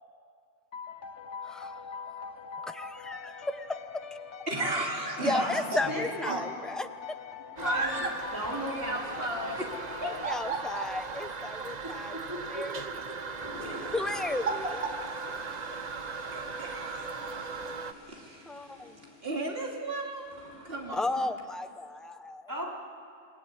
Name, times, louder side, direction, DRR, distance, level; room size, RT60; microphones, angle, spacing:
sound 1, 0.7-11.1, left 6 dB, 75° left, 1.3 m, -43 dB
voice 1, 1.4-1.8 2.2-2.3 2.6-3.8 5.2-6.9 10.2-12.2 12.5-12.8 13.9-14.7 18.5-19.0 20.9-22.5, left 2 dB, ahead, 8 dB, 0.8 m, -34 dB
voice 2, 4.5-5.9 6.2-6.4 7.6-8.1 8.7-10.8 11.5-11.6 13.6-14.4 16.3-17.5 18.1-18.4 19.2-20.3 20.6-21.2, right 2 dB, 55° right, -1 dB, 3.2 m, -34 dB
voice 3, 5.9-6.5 7.6-9.5 10.3-10.5 11.8-13.2 13.4-13.8 22.5-22.7, equal, 15° right, -4 dB, 4.6 m, -37 dB
Toilet flush, 7.6-17.9, right 5 dB, 40° right, 1.0 m, -39 dB
Toilet flush 2, 13.2-21.1, left 1 dB, 35° left, 8.1 m, -50 dB
28.5 x 19.0 x 9.4 m, 2.3 s
omnidirectional pair, 1.2 m